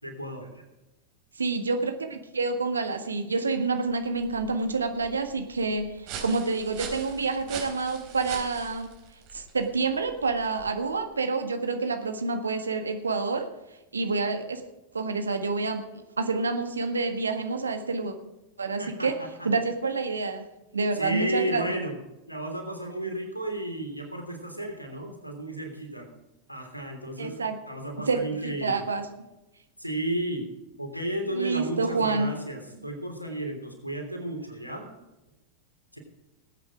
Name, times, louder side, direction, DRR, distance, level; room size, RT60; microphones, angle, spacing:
voice 1, 0.0-0.6 18.8-19.1 19.4-19.5 20.9-22.0 22.3-26.1 26.5-27.4 27.7-28.9 29.8-30.4 30.8-35.0 35.9-36.0, right 1 dB, 90° left, 3 dB, 3.1 m, -33 dB
voice 2, 1.4-8.9 9.3-13.5 13.9-14.6 14.9-15.8 16.2-18.1 18.6-19.1 19.4-20.4 20.7-21.8 27.2-27.6 28.1-28.2 28.4-29.1 31.3-32.3, right 3 dB, 75° right, 7 dB, 1.6 m, -28 dB
sound 1, 3.6-11.1, right 6 dB, 40° right, 3.8 m, -43 dB
19.5 x 8.7 x 4.9 m, 1.0 s
figure-of-eight pair, 90°, 0 cm